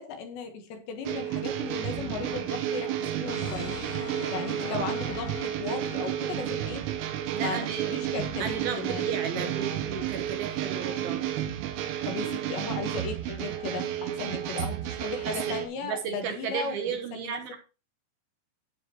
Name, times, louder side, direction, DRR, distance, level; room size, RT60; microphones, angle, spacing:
voice 1, 0.0-3.8 4.3-6.9 7.4-9.5 12.0-17.4, left 5 dB, 70° left, 5 dB, 3.5 m, -36 dB
sound 1, 1.1-15.7, right 11 dB, 90° right, 3.8 m, -32 dB
Brass instrument, 2.2-6.0, left 4 dB, 50° left, 1.9 m, -41 dB
voice 2, 7.3-8.0 8.4-11.2 15.3-15.4 15.8-17.6, right 7 dB, 75° right, 5 dB, 2.3 m, -34 dB
11.5 x 9.0 x 3.1 m, 0.30 s
omnidirectional pair, 5.7 m